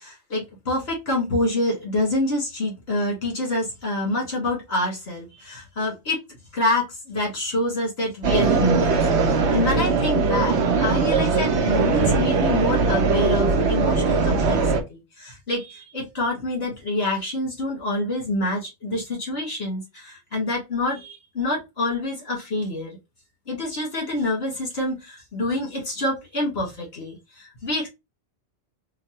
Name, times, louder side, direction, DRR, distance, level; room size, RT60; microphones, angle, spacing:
voice 1, 0.0-6.2 6.5-23.0 23.5-27.9, left 2 dB, 65° left, -2 dB, 1.8 m, -27 dB
sound 1, 8.2-14.8, right 4 dB, 90° right, 0.9 m, -20 dB
3.8 x 2.1 x 2.9 m, 0.23 s
omnidirectional pair, 1.1 m